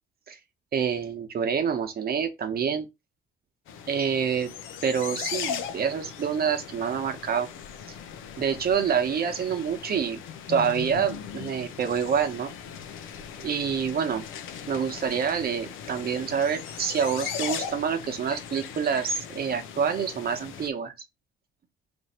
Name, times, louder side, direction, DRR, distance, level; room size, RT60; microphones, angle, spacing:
voice 1, 0.7-2.9 3.9-4.5 4.8-7.5 8.4-10.2 10.5-12.5 13.4-14.2 14.7-20.9, right 7 dB, 50° right, 0.9 m, -27 dB
sound 1, 3.7-20.7, left 8 dB, 90° left, 0.5 m, -38 dB
3.1 x 2.6 x 4.2 m
cardioid pair, 90°, 20 cm